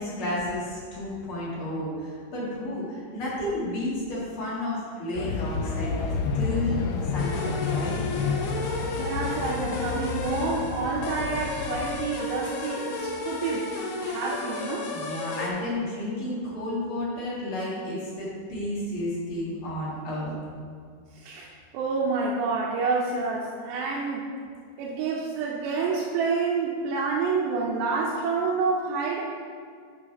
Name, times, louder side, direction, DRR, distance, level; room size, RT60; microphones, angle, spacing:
voice 1, 0.0-6.0 6.3-8.0 14.9-20.4, left 1 dB, 50° left, -7 dB, 1.7 m, -32 dB
sound 1, 5.2-12.0, left 5 dB, 85° left, 2.8 m, -30 dB
sound 2, 7.2-15.5, left 3 dB, 70° left, 2.3 m, -33 dB
voice 2, 9.0-13.7 13.9-14.9 21.2-24.3 24.8-29.2, right 4 dB, 85° right, -4 dB, 2.9 m, -28 dB
7.1 x 5.6 x 5.3 m, 2.1 s
omnidirectional pair, 4.8 m